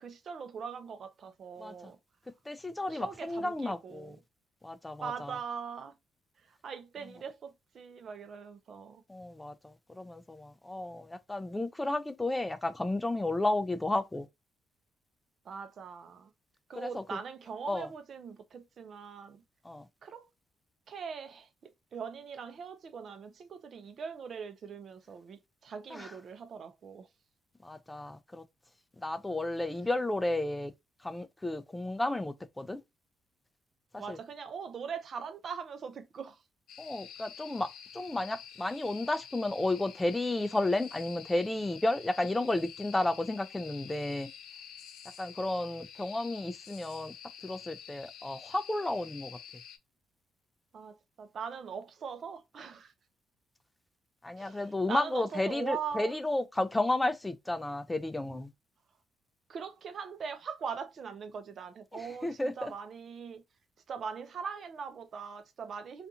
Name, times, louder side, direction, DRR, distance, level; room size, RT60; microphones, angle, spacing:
voice 1, 0.0-2.0 2.9-4.2 5.0-6.0 6.5-9.0 15.5-16.3 16.7-19.4 20.0-20.3 20.9-27.1 33.9-36.4 50.7-52.9 54.4-56.2 59.5-63.4 63.9-66.1, right 6 dB, 55° right, 0.5 m, -41 dB
voice 2, 2.5-4.2 4.6-5.4 9.1-14.3 16.8-17.2 17.7-17.9 19.6-19.9 25.9-26.1 27.6-28.4 29.0-30.7 31.0-32.8 33.9-34.2 36.8-44.3 45.2-47.1 47.4-49.4 54.2-58.5 61.9-62.7, left 2 dB, 15° left, 0.4 m, -32 dB
sound 1, 36.7-49.8, left 9 dB, 80° left, 0.3 m, -49 dB
2.5 x 2.4 x 2.6 m
cardioid pair, 90°, 0 cm